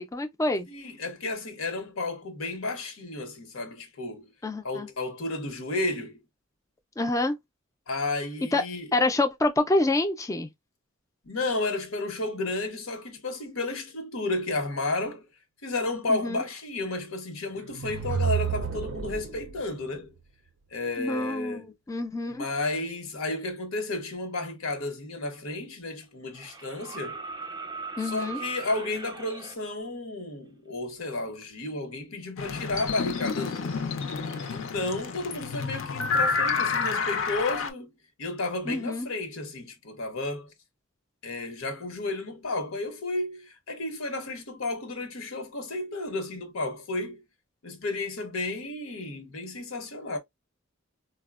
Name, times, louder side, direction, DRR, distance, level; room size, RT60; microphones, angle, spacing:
voice 1, 0.0-0.7 4.4-4.9 7.0-7.4 8.5-8.6 8.9-10.5 16.1-16.4 21.0-22.5 28.0-28.4 38.7-39.1, left 2 dB, 15° left, 0.3 m, -27 dB
voice 2, 0.7-4.3 4.6-6.2 7.9-8.9 11.2-15.3 15.6-20.1 20.7-21.7 22.3-27.2 28.0-33.9 34.5-37.9 38.2-40.5 41.2-47.2 47.6-50.2, left 2 dB, 90° left, 0.9 m, -32 dB
sound 1, 17.6-19.6, right 7 dB, 70° right, 0.4 m, -30 dB
sound 2, 25.2-25.3 26.3-29.6 31.3-31.4, right 4 dB, 20° right, 0.7 m, -39 dB
sound 3, 32.4-37.7, left 5 dB, 70° left, 0.5 m, -29 dB
4.0 x 2.1 x 2.3 m
head